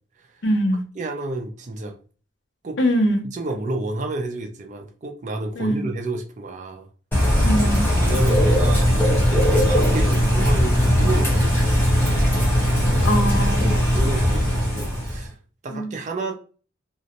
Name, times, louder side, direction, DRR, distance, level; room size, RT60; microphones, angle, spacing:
voice 1, 0.4-0.8 2.8-3.2 5.6-5.8 7.4-7.9 13.0-13.7 15.7-15.9, equal, 65° left, 5 dB, 0.5 m, -22 dB
voice 2, 1.0-1.9 2.6-2.8 3.2-6.9 8.0-11.8 12.8-13.1 13.6-15.3 15.6-16.3, right 2 dB, 40° right, 3 dB, 0.4 m, -30 dB
Bird / Rain, 7.1-15.3, equal, 10° left, 0.7 m, -19 dB
2.5 x 2.0 x 2.7 m, 0.38 s
head